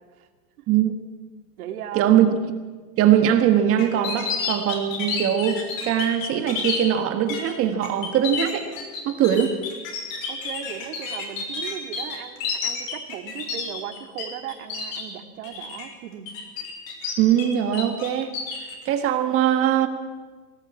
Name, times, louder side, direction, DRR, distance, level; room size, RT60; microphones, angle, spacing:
voice 1, 0.7-1.0 1.9-2.4 3.0-8.7 9.0-9.6 17.2-18.4 18.8-19.9, right 10 dB, 30° right, 7 dB, 1.5 m, -21 dB
voice 2, 1.6-2.1 10.3-16.4, right 10 dB, 65° right, 6 dB, 2.5 m, -37 dB
sound 1, 3.8-6.8 7.3-7.5 7.8-14.2 14.5-15.0 15.4-15.8 16.3-17.5 17.7-18.7, left 5 dB, 55° left, 6.2 m, -30 dB
20.5 x 18.5 x 8.6 m, 1.4 s
supercardioid pair, 155°, 47 cm